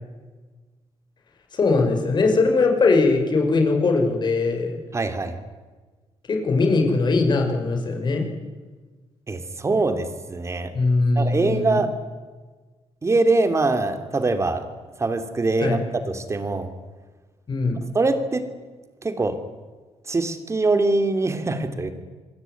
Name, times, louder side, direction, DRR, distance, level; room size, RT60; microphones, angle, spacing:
voice 1, 1.5-4.8 6.3-8.3 10.7-11.8 15.6-15.8 17.5-17.8, left 3 dB, 40° left, 3 dB, 6.2 m, -20 dB
voice 2, 4.9-5.3 9.3-10.7 11.1-11.9 13.0-14.6 15.0-16.7 17.9-18.4 19.0-19.4 20.1-21.9, right 3 dB, 25° right, 8 dB, 3.1 m, -23 dB
27.0 x 23.0 x 9.5 m, 1.4 s
cardioid pair, 125°, 11 cm